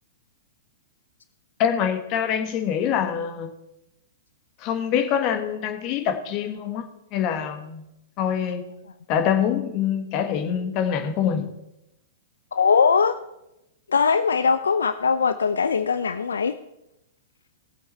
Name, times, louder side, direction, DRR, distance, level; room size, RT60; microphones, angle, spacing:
voice 1, 1.6-3.5 4.6-7.9 8.2-8.7 9.1-11.5, left 8 dB, 40° left, 8 dB, 1.6 m, -25 dB
voice 2, 12.5-13.1 13.9-16.6, left 5 dB, 80° left, 12 dB, 0.5 m, -21 dB
18.5 x 7.9 x 4.4 m, 0.90 s
hypercardioid pair, 110°, 0 cm